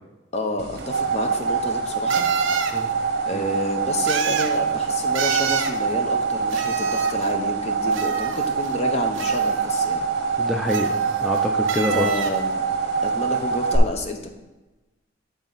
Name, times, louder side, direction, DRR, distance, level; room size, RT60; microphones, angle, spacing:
voice 1, 0.3-2.2 3.2-10.0 11.7-12.6 13.0-14.3, left 1 dB, 35° left, 4 dB, 0.7 m, -29 dB
sound 1, 0.6-13.8, right 5 dB, 55° right, 0.9 m, -24 dB
sound 2, 0.8-0.9 2.1-2.8 4.1-4.6 5.1-5.8 6.5-7.3 7.9-8.7 9.2-9.8 10.7-11.4 11.7-12.4, right 7 dB, 75° right, 0.5 m, -29 dB
voice 2, 10.4-12.1, left 1 dB, ahead, 1 dB, 0.4 m, -26 dB
9.2 x 4.0 x 3.9 m, 1.1 s
head